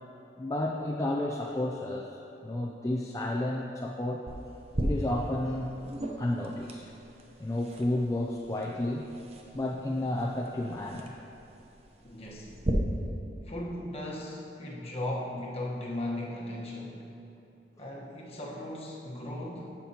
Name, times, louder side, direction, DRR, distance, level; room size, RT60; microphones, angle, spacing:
voice 1, 0.0-4.5 4.8-5.7 6.2-6.8 7.4-9.1 9.5-11.2, left 1 dB, 20° left, 0 dB, 0.3 m, -32 dB
sound 1, 4.3-12.7, right 1 dB, 35° right, 0.7 m, -39 dB
voice 2, 12.0-12.5 13.4-17.1 17.8-19.8, left 1 dB, 35° left, -3 dB, 1.1 m, -37 dB
14.0 x 5.8 x 2.8 m, 2.9 s
head